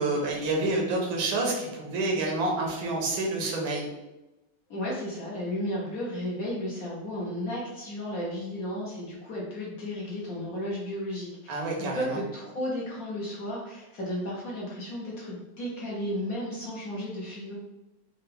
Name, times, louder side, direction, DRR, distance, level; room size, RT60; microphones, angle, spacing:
voice 1, 0.0-3.9 11.5-12.2, right 2 dB, 80° right, 0 dB, 1.6 m, -28 dB
voice 2, 4.7-17.5, left 1 dB, 55° left, -4 dB, 1.1 m, -34 dB
4.5 x 2.4 x 3.3 m, 1.0 s
omnidirectional pair, 2.2 m